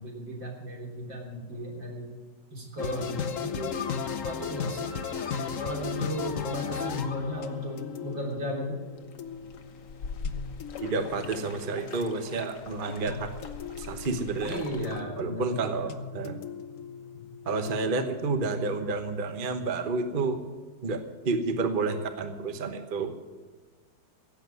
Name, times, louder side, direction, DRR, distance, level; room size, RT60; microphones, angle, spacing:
voice 1, 0.0-2.1 2.5-3.7 4.2-5.0 5.6-8.8 14.3-15.5, equal, 80° right, -1 dB, 4.3 m, -35 dB
sound 1, 2.8-18.6, left 6 dB, 55° left, 1.1 m, -37 dB
sound 2, 3.7-7.9, left 4 dB, 30° left, 1.0 m, -43 dB
sound 3, 9.0-15.0, left 5 dB, 70° left, 1.8 m, -42 dB
voice 2, 10.8-13.3 13.8-14.6 15.2-16.4 17.4-20.4 20.8-23.1, right 3 dB, 35° right, 7 dB, 1.1 m, -30 dB
17.0 x 8.0 x 9.5 m, 1.3 s
omnidirectional pair, 2.0 m